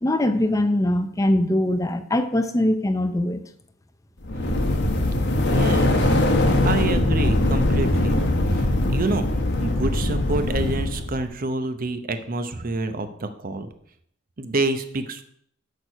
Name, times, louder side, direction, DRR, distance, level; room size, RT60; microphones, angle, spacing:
voice 1, 0.0-3.4, left 1 dB, 15° left, 8 dB, 0.5 m, -22 dB
sound 1, 4.2-11.2, left 1 dB, 60° left, 1.1 m, -21 dB
voice 2, 4.3-4.9 5.4-6.4 6.6-8.2 8.5-8.6 8.9-9.3 9.6-13.7 14.4-15.2, right 2 dB, 45° right, 9 dB, 0.7 m, -28 dB
6.6 x 6.3 x 5.5 m, 0.67 s
head